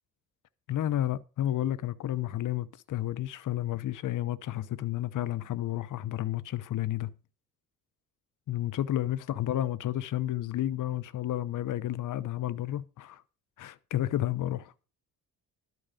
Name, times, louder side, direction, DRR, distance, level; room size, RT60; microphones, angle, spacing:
voice 1, 0.7-7.1 8.5-13.2 13.6-14.7, left 13 dB, 45° left, 0.8 m, -31 dB
12.0 x 6.3 x 6.7 m
hypercardioid pair, 45°, 42 cm